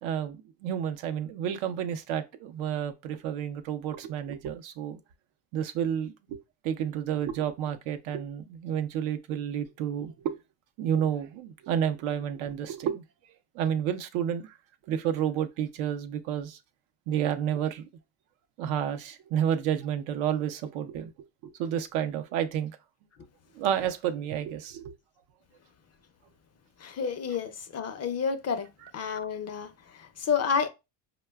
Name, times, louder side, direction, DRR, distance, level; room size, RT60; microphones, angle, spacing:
voice 1, 0.0-5.0 5.5-10.4 10.8-13.0 13.5-14.6 14.9-16.6 17.1-17.9 18.6-21.1 21.4-22.7 23.5-24.9, right 9 dB, 85° right, 0.6 m, -30 dB
voice 2, 26.8-28.7 28.9-30.7, left 6 dB, 35° left, 0.4 m, -30 dB
4.7 x 2.2 x 2.2 m
supercardioid pair, 75°, 48 cm